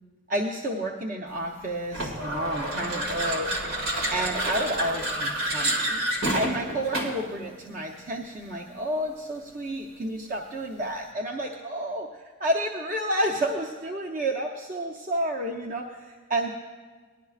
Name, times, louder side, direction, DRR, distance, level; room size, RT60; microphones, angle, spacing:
voice 1, 0.3-3.8 4.1-6.0 6.3-12.1 12.4-16.5, right 1 dB, 40° right, 0 dB, 0.7 m, -30 dB
sound 1, 1.9-7.3, right 1 dB, 90° right, 2.2 m, -29 dB
19.0 x 12.0 x 2.4 m, 1.5 s
head